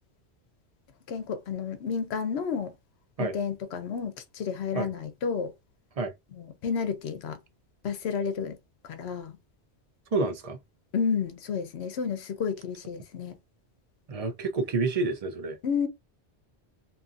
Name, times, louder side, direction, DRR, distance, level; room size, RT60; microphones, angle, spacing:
voice 1, 1.1-2.7 3.3-5.5 6.4-7.4 7.8-8.6 8.8-9.4 10.9-13.4 15.6-15.9, left 6 dB, 75° left, 0.8 m, -31 dB
voice 2, 10.1-10.6 14.1-15.6, right 3 dB, 45° right, 0.5 m, -28 dB
2.7 x 2.5 x 2.4 m
omnidirectional pair, 1.1 m